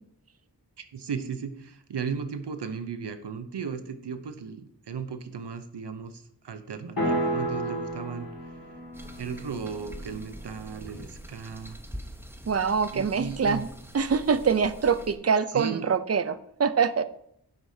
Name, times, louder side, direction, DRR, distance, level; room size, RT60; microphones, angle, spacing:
voice 1, 0.8-8.3 9.2-11.8 12.9-13.7 15.5-15.9, right 6 dB, 80° right, 10 dB, 0.7 m, -36 dB
sound 1, 7.0-11.1, right 1 dB, 55° left, 2.3 m, -33 dB
sound 2, 8.9-15.2, equal, 5° right, 0.9 m, -44 dB
voice 2, 12.5-13.7 13.9-17.0, right 6 dB, 40° right, 13 dB, 0.6 m, -24 dB
9.5 x 6.4 x 2.7 m, 0.71 s
cardioid pair, 40°, 41 cm